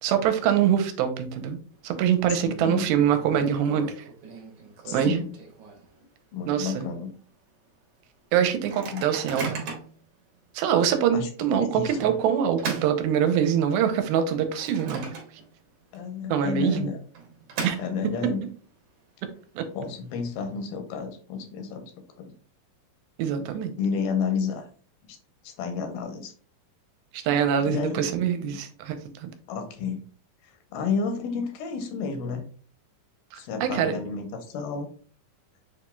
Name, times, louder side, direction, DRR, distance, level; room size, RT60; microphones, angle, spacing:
voice 1, 0.0-1.6 1.8-3.9 4.9-5.2 6.5-6.9 8.3-9.5 10.6-15.1 16.3-16.9 17.6-17.8 19.6-19.7 23.2-23.7 27.1-28.9 29.2-29.3 33.6-33.9, right 8 dB, 90° right, 7 dB, 2.5 m, -24 dB
Microwave oven, 1.7-2.2 2.5-2.6 3.0-6.0 6.5-6.6 6.8-7.2 7.7-7.8 8.5-10.0 10.6-10.8 11.9-13.7 14.2-15.7 16.0-16.1 16.9-18.3, right 5 dB, 65° right, 2.1 m, -38 dB
voice 2, 2.4-2.9 4.9-5.3 6.3-7.1 8.9-9.0 11.1-11.3 11.6-12.1 15.9-17.0 17.8-18.5 19.7-21.9 22.2-22.3 23.8-24.7 25.1-25.2 25.4-26.3 27.6-28.1 29.5-30.0 30.7-32.4 33.3-34.9, left 5 dB, 80° left, 5 dB, 2.6 m, -31 dB
6.9 x 3.0 x 2.3 m, 0.43 s
omnidirectional pair, 4.3 m